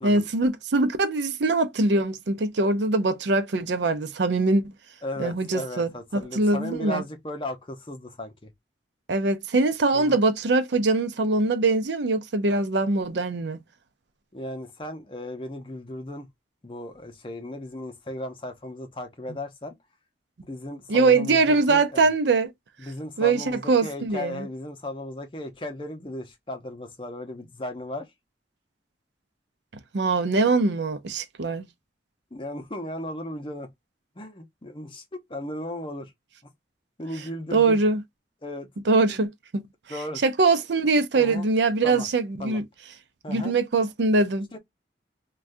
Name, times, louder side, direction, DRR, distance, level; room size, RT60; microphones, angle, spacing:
voice 1, 0.0-4.7 5.2-7.0 9.1-13.6 20.9-22.5 23.2-24.5 29.9-31.7 37.5-38.0 38.9-39.6 40.2-42.6 43.3-44.5, right 3 dB, 75° right, 0.5 m, -22 dB
voice 2, 5.0-8.5 9.9-10.2 14.3-16.3 16.6-19.7 20.5-22.0 22.8-28.1 32.3-33.7 34.2-36.1 37.0-37.8 38.4-38.7 39.0-39.2 39.9-40.2 41.1-41.4 41.8-42.1 42.4-42.6 43.2-43.5 44.5-44.6, left 1 dB, 30° left, 0.6 m, -36 dB
3.4 x 2.3 x 2.5 m
head